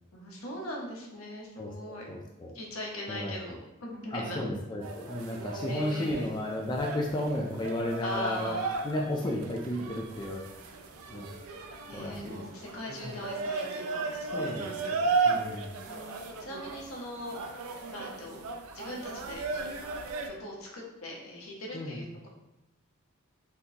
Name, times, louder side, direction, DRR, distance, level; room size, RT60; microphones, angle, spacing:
voice 1, 0.1-2.1 2.5-4.4 5.7-6.4 8.0-8.8 11.9-15.1 15.9-16.1 16.4-17.3 17.9-18.4 18.7-19.7 20.4-22.3, equal, 75° left, -1 dB, 0.8 m, -40 dB
voice 2, 2.1-2.5 3.1-3.3 4.1-8.6 8.8-10.4 11.1-11.3 11.9-12.4 12.9-13.1 14.3-15.0 15.2-15.7 21.7-22.0, left 1 dB, 20° left, -1 dB, 0.3 m, -33 dB
sound 1, 4.8-20.3, right 4 dB, 90° right, 0.4 m, -35 dB
3.6 x 2.5 x 2.8 m, 0.99 s
head